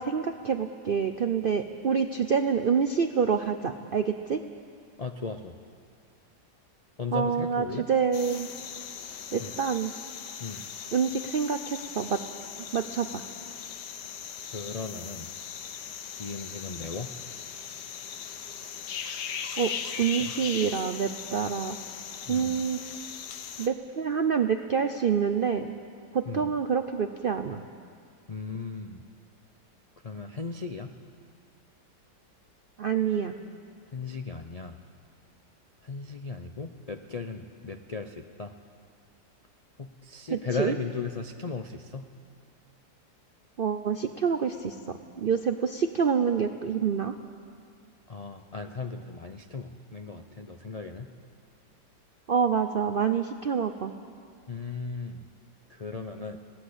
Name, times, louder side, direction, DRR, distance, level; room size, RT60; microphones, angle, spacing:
voice 1, 0.0-4.4 7.1-8.5 9.3-9.9 10.9-12.2 12.6-13.2 19.6-19.7 20.0-21.8 22.3-22.8 23.6-25.7 26.1-27.6 32.8-33.3 40.3-40.7 43.6-47.1 52.3-53.9, right 6 dB, 65° right, 8 dB, 0.5 m, -27 dB
voice 2, 5.0-5.6 7.0-7.9 9.4-9.6 10.4-10.6 14.5-15.3 16.2-17.1 20.2-20.3 22.3-22.6 26.3-26.5 28.3-29.0 30.0-30.9 33.9-34.8 35.8-38.5 39.8-42.1 48.1-51.1 54.5-55.3 55.7-56.4, left 4 dB, 55° left, 6 dB, 0.4 m, -36 dB
sound 1, 8.1-23.7, left 7 dB, 75° left, 1.5 m, -39 dB
20.0 x 17.5 x 8.0 m, 2.2 s
omnidirectional pair, 1.8 m